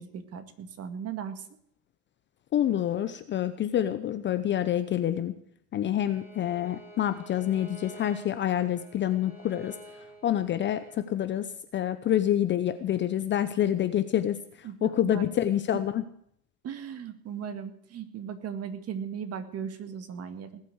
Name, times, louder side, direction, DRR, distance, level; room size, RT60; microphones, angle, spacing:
voice 1, 0.0-1.4 14.6-15.3 16.6-20.6, right 7 dB, 30° right, 10 dB, 2.0 m, -37 dB
voice 2, 2.5-5.3 5.7-11.5 11.7-16.0, left 11 dB, 25° left, 11 dB, 0.8 m, -27 dB
Bowed string instrument, 6.0-11.0, equal, 5° right, 4.0 m, -49 dB
19.5 x 8.3 x 8.0 m, 0.67 s
supercardioid pair, 125°, 47 cm